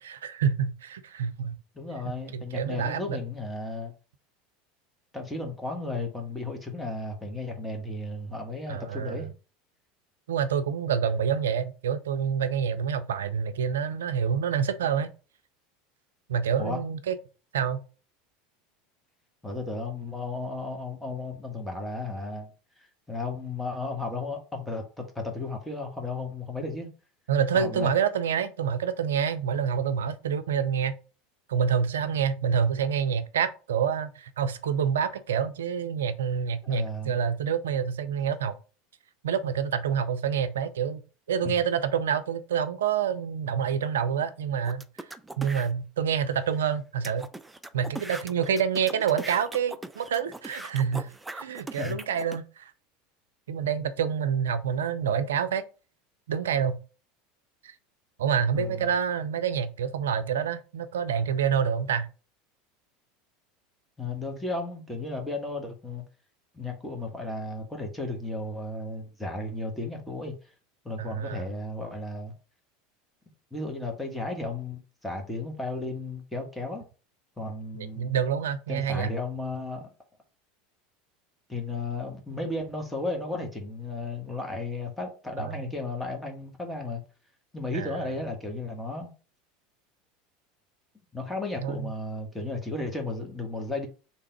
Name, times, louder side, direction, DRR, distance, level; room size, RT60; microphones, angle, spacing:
voice 1, 0.0-1.6 2.0-3.2 8.7-9.3 10.3-15.1 16.3-17.2 17.5-17.8 27.3-31.0 31.5-38.6 39.2-41.0 41.3-44.9 45.4-47.3 47.7-52.6 53.5-55.6 56.3-56.8 57.6-57.7 58.2-62.1 71.0-71.5 77.7-79.1 85.4-85.7 87.7-88.1 91.6-91.9, right 7 dB, 75° right, 0.4 m, -27 dB
voice 2, 1.7-3.9 5.1-9.3 16.6-16.8 19.4-22.5 23.1-26.9 27.5-27.9 36.6-37.2 41.4-41.5 51.8-52.0 58.5-58.8 64.0-66.0 66.5-70.3 70.8-72.3 73.5-76.8 77.4-78.1 78.7-79.9 81.5-87.0 87.5-89.1 91.1-93.9, left 2 dB, 5° left, 1.3 m, -34 dB
sound 1, 44.6-45.7 46.3-46.4 46.6-46.7 47.0-52.4, right 2 dB, 10° right, 0.4 m, -40 dB
3.6 x 2.9 x 4.4 m
figure-of-eight pair, 75°, 0 cm